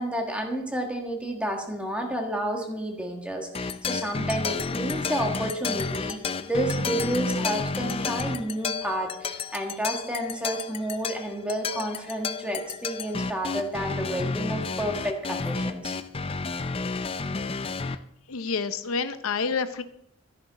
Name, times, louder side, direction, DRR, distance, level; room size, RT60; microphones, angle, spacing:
voice 1, 0.0-15.9, right 1 dB, 5° right, 2 dB, 1.6 m, -30 dB
sound 1, 3.5-18.0, left 4 dB, 25° left, 0.4 m, -31 dB
voice 2, 18.3-19.8, left 5 dB, 90° left, 11 dB, 0.7 m, -29 dB
13.0 x 10.5 x 4.1 m, 0.76 s
head